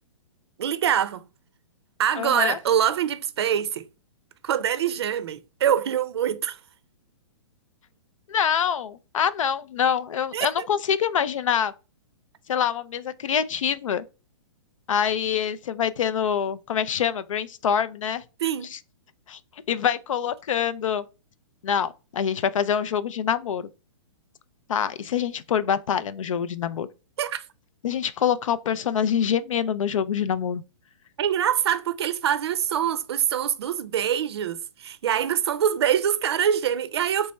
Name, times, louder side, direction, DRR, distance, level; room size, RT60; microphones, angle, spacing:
voice 1, 0.6-1.2 2.0-3.8 4.4-6.6 10.3-10.7 18.4-18.7 27.2-27.4 31.2-37.3, right 9 dB, 55° right, 0.5 m, -24 dB
voice 2, 2.2-2.6 8.3-11.7 12.5-14.0 14.9-18.2 18.7-18.8 19.3-19.4 19.7-21.0 21.6-23.7 24.7-26.9 27.8-30.6, left 8 dB, 85° left, 0.5 m, -25 dB
4.1 x 3.4 x 3.2 m
hypercardioid pair, 170°, 16 cm